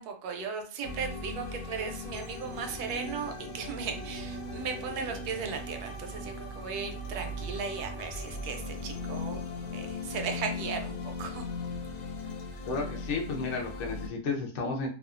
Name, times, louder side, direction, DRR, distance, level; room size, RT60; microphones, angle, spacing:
voice 1, 0.0-9.4 9.7-11.4, right 5 dB, 80° right, 4 dB, 1.1 m, -37 dB
sound 1, 0.8-14.1, left 2 dB, 80° left, 1.1 m, -38 dB
voice 2, 12.7-14.9, left 4 dB, 65° left, -1 dB, 0.7 m, -32 dB
2.7 x 2.2 x 2.4 m, 0.40 s
omnidirectional pair, 1.6 m